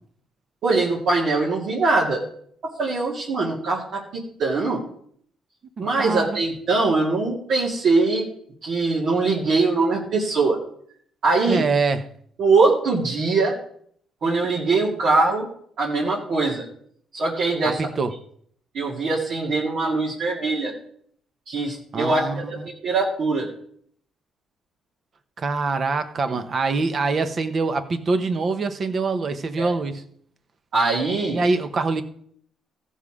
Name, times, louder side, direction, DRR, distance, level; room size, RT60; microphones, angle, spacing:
voice 1, 0.6-2.2 2.6-4.8 5.8-8.3 8.6-10.6 11.2-11.6 12.4-13.6 14.2-15.5 15.8-16.7 17.1-17.8 18.7-20.7 21.5-22.2 22.5-23.5 26.3-26.4 29.6-29.8 30.7-31.4, right 3 dB, 70° right, 2.2 m, -22 dB
voice 2, 5.8-6.4 11.5-12.1 17.6-18.1 21.9-22.7 25.4-30.0 31.3-32.0, right 3 dB, 45° right, 1.0 m, -24 dB
15.0 x 5.6 x 4.9 m
cardioid pair, 90°, 0 cm